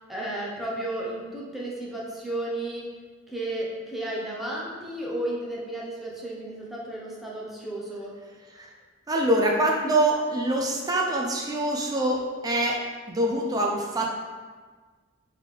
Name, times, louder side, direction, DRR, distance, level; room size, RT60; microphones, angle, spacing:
voice 1, 0.1-2.8 3.3-8.1, right 1 dB, ahead, -5 dB, 0.7 m, -33 dB
voice 2, 9.1-12.8 13.1-14.3, right 1 dB, 20° right, -1 dB, 0.4 m, -25 dB
3.7 x 3.7 x 3.2 m, 1.5 s
head